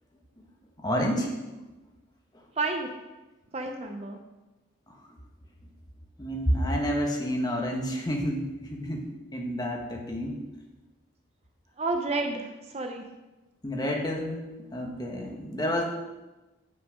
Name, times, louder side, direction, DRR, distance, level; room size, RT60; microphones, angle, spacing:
voice 1, 0.8-1.7 4.9-5.0 6.2-9.1 9.3-10.4 13.6-14.4 14.7-15.8, equal, 20° left, 1 dB, 1.1 m, -29 dB
voice 2, 2.6-2.9 3.5-4.2 11.8-13.0, right 3 dB, 30° right, 5 dB, 0.5 m, -30 dB
7.3 x 6.0 x 4.9 m, 1.1 s
head